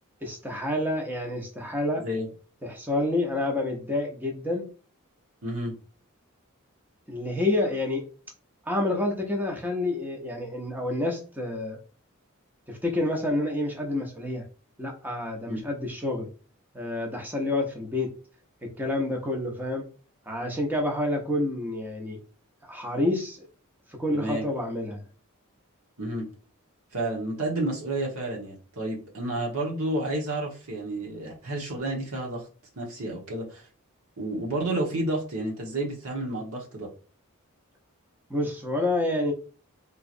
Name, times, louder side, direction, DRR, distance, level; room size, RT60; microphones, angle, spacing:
voice 1, 0.2-2.0 2.6-4.7 7.1-8.0 8.7-11.8 12.7-14.4 14.8-16.3 16.7-18.1 18.6-19.8 20.3-22.2 22.6-23.4 24.0-25.0 38.3-39.3, left 1 dB, 10° right, 1 dB, 0.6 m, -28 dB
voice 2, 5.4-5.7 15.5-15.7 24.1-24.5 26.0-26.3 26.9-32.5 32.7-33.6 34.2-36.9, right 1 dB, 80° right, -2 dB, 1.2 m, -30 dB
3.6 x 3.0 x 2.5 m, 0.38 s
head